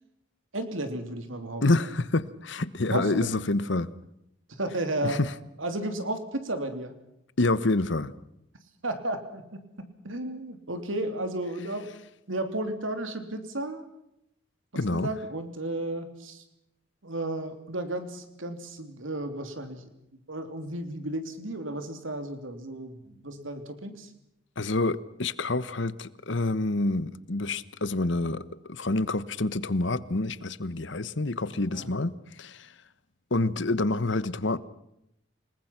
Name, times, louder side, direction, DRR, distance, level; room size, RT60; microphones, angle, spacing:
voice 1, 0.5-1.6 2.8-3.5 4.5-5.2 5.6-6.9 8.8-11.9 12.3-13.9 14.7-16.4 17.0-19.9 20.3-24.1 31.7-31.9, right 1 dB, 90° right, 3.1 m, -33 dB
voice 2, 1.6-3.9 5.0-5.3 7.4-8.1 14.7-15.1 24.6-28.4 28.7-32.1 32.4-32.7 33.3-34.6, left 2 dB, 70° left, 1.1 m, -27 dB
29.0 x 20.0 x 5.9 m
head